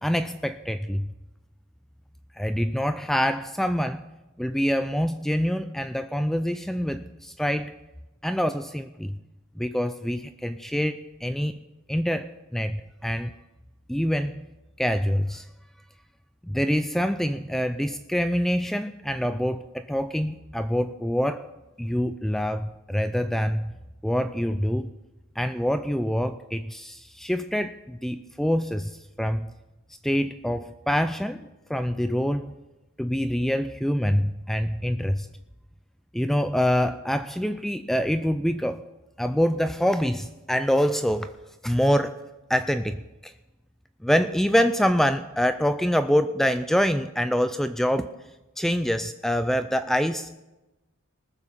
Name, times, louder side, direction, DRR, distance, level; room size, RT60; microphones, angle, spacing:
voice 1, 0.0-1.1 2.4-4.0 4.4-7.7 8.2-9.2 9.6-11.6 11.9-13.3 13.9-14.5 14.8-15.5 16.4-21.5 21.8-23.7 24.0-24.9 25.4-29.5 30.0-32.5 33.0-35.3 36.1-38.8 39.2-41.3 41.6-42.2 42.5-43.3 44.0-48.1 48.6-50.3, equal, ahead, 10 dB, 0.3 m, -25 dB
19.5 x 7.1 x 5.6 m, 1.0 s
head